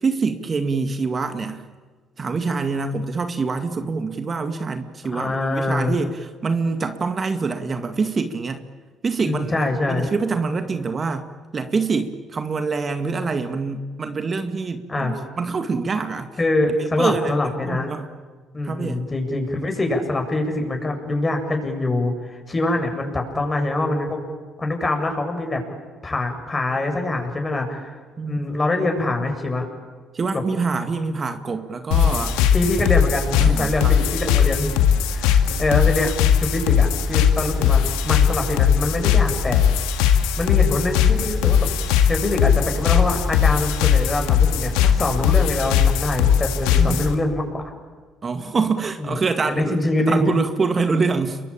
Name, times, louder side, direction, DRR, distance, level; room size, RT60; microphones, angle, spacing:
voice 1, 0.0-1.6 2.2-8.6 9.0-11.3 11.5-16.3 16.8-17.3 17.6-18.1 18.6-19.0 28.2-28.4 30.1-32.3 33.4-33.9 46.8-47.0 48.2-49.8 50.1-51.4, right 4 dB, 40° right, 8 dB, 2.1 m, -25 dB
voice 2, 5.1-5.9 9.2-10.1 14.9-15.1 16.4-17.9 18.5-24.2 24.6-25.6 26.0-28.0 28.2-29.7 30.3-30.4 32.0-34.7 35.1-35.3 35.6-36.1 36.4-39.6 40.4-41.7 42.1-47.6 49.0-49.2 49.5-50.4, left 2 dB, 25° left, 4 dB, 7.9 m, -24 dB
sound 1, 31.9-47.1, left 8 dB, 80° left, 2.1 m, -19 dB
29.5 x 23.0 x 8.9 m, 1.5 s
hypercardioid pair, 60°, 0 cm